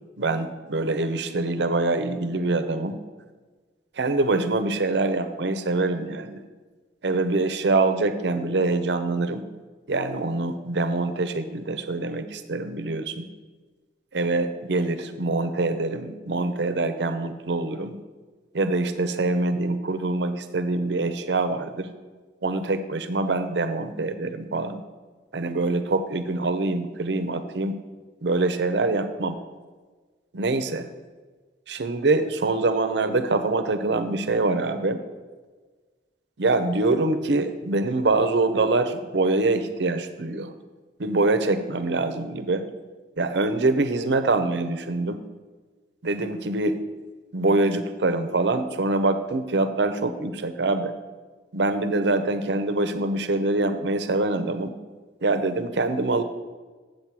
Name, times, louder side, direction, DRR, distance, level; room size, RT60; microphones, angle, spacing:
voice 1, 0.2-3.0 4.0-6.4 7.0-9.5 9.9-13.3 14.1-18.0 18.5-21.9 22.4-24.8 25.3-27.8 28.2-29.4 30.3-30.9 31.7-35.0 36.4-40.5 41.0-42.6 43.2-45.2 46.0-46.8 47.3-50.9 51.5-54.7 55.2-56.2, right 2 dB, 75° right, 10 dB, 0.6 m, -24 dB
7.6 x 7.4 x 4.7 m, 1.4 s
head